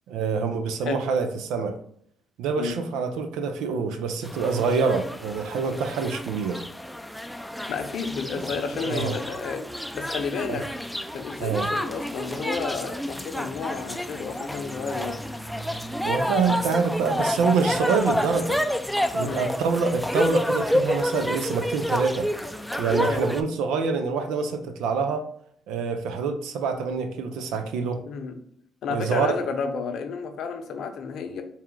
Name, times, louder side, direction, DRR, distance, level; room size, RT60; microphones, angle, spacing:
voice 1, 0.1-1.8 2.4-6.6 8.8-9.1 10.5-10.6 11.4-11.7 16.0-18.6 19.1-22.3 22.8-25.3 25.7-28.0 28.9-29.3, right 5 dB, 80° right, 0.5 m, -26 dB
sound 1, 4.2-23.4, equal, ahead, 0.4 m, -29 dB
voice 2, 7.7-9.6 9.9-10.6 11.1-15.1 19.2-19.4 23.0-23.2 28.1-28.4 28.8-31.4, left 5 dB, 70° left, 0.7 m, -31 dB
4.2 x 2.4 x 3.7 m
supercardioid pair, 60°, 0 cm